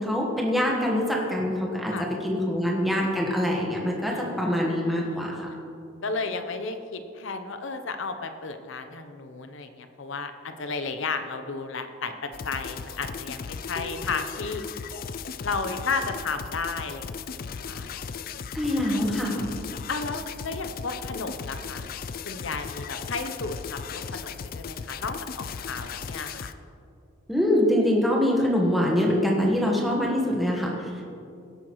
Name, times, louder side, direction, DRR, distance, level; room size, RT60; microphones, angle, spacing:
voice 1, 0.0-1.9 2.2-5.5 18.5-19.5 27.3-31.1, left 1 dB, ahead, -3 dB, 1.4 m, -24 dB
voice 2, 4.7-5.6 6.0-14.6 15.4-17.1 17.3-17.9 19.9-21.9 22.2-26.5, left 4 dB, 70° left, 8 dB, 0.8 m, -33 dB
sound 1, 12.3-26.5, left 6 dB, 45° left, 0.3 m, -37 dB
17.0 x 8.8 x 3.1 m, 2.6 s
head